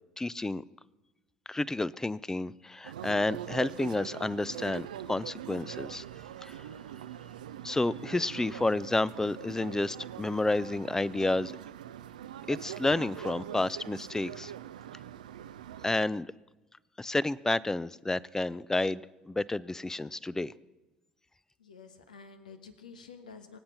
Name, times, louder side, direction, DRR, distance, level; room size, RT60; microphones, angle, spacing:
voice 1, 0.2-0.6 1.5-6.0 6.4-6.6 7.6-11.5 12.5-14.5 15.8-16.3 17.0-20.5, left 2 dB, 10° left, 20 dB, 0.5 m, -30 dB
sound 1, 2.8-16.1, right 11 dB, 80° right, 0.4 m, -43 dB
voice 2, 21.6-23.6, left 5 dB, 85° left, 7 dB, 1.2 m, -50 dB
24.0 x 8.7 x 6.0 m, 1.1 s
figure-of-eight pair, 60°, 4 cm